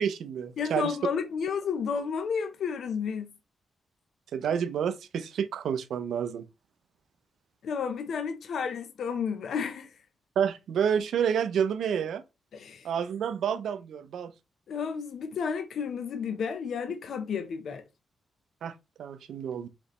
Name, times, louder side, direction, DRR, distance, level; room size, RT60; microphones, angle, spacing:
voice 1, 0.0-0.9 4.3-6.4 10.4-12.2 12.8-14.3 18.6-18.7 19.0-19.7, right 8 dB, 80° right, 0.4 m, -29 dB
voice 2, 0.6-3.3 7.6-10.0 12.5-12.9 14.7-17.8, left 6 dB, 65° left, 0.5 m, -32 dB
5.0 x 3.1 x 2.9 m
wide cardioid pair, 130°, 0 cm